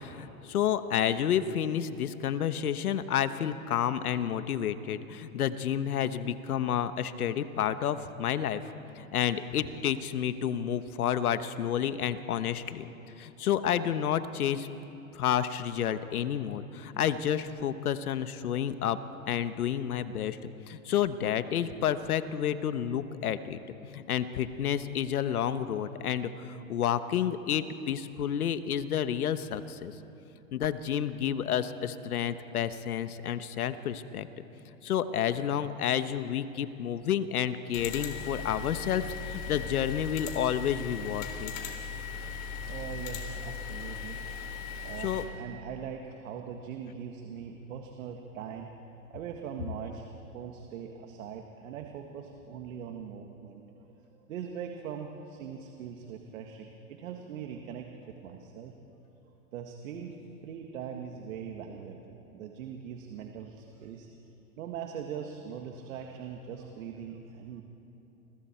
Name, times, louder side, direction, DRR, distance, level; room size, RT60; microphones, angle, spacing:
voice 1, 0.0-8.6 8.9-12.9 13.2-14.7 15.1-19.0 19.3-20.4 20.7-29.9 30.5-34.3 34.8-41.5 45.0-45.2, left 9 dB, 85° left, 12 dB, 1.2 m, -30 dB
sound 1, 37.7-45.2, left 5 dB, 55° left, 3.8 m, -38 dB
voice 2, 42.6-44.3 44.8-48.7 49.1-50.1 50.3-58.7 59.5-60.2 60.4-64.1 64.6-67.6, right 7 dB, 65° right, 3 dB, 1.9 m, -41 dB
29.5 x 22.0 x 4.5 m, 3.0 s
hypercardioid pair, 120°, 43 cm